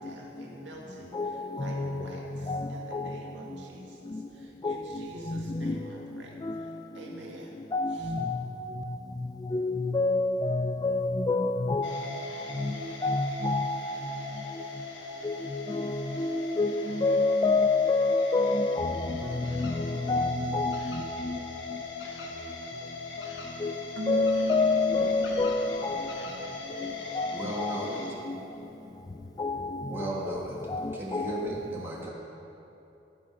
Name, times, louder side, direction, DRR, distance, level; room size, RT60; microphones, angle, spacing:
voice 1, 0.0-7.5 7.9-8.2, right 1 dB, 80° right, 1.9 m, -48 dB
voice 2, 1.1-2.0 2.5-3.2 4.6-4.8 5.3-5.8 7.7-8.5 9.5-12.1 12.6-12.7 13.0-14.0 15.2-19.2 19.5-21.4 23.6-23.7 24.1-26.1 26.8-27.8 28.3-28.4 29.4-29.9 30.7-31.5, left 3 dB, 20° left, 0.3 m, -28 dB
sound 1, 11.8-28.1, left 4 dB, 80° left, 1.3 m, -40 dB
Keyboard (musical), 24.0-25.9, equal, 60° right, 1.5 m, -34 dB
sound 2, 24.4-30.0, right 1 dB, 40° right, 0.8 m, -50 dB
voice 3, 27.3-28.0 29.8-32.1, right 1 dB, 15° right, 1.4 m, -36 dB
11.5 x 8.4 x 5.4 m
head